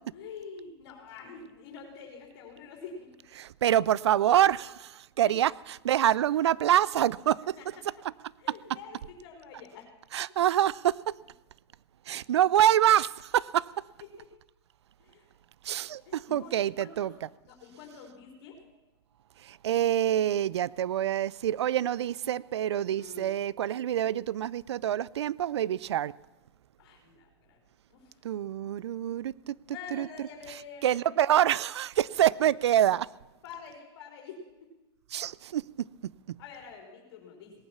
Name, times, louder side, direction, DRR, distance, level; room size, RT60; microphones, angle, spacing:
voice 1, 0.1-3.1 5.3-5.4 7.6-7.7 8.4-9.9 14.2-14.3 15.0-15.2 16.1-17.1 17.5-18.6 23.0-23.3 26.8-27.6 27.9-28.0 29.7-31.0 33.4-34.4 36.4-37.5, left 5 dB, 65° left, 3.6 m, -46 dB
voice 2, 3.4-7.6 10.1-11.0 12.1-13.7 15.6-17.1 19.4-26.1 28.2-30.3 30.8-33.1 35.1-35.6 36.3-36.4, right 11 dB, 85° right, 0.4 m, -26 dB
18.5 x 8.9 x 7.3 m
hypercardioid pair, 110°, 14 cm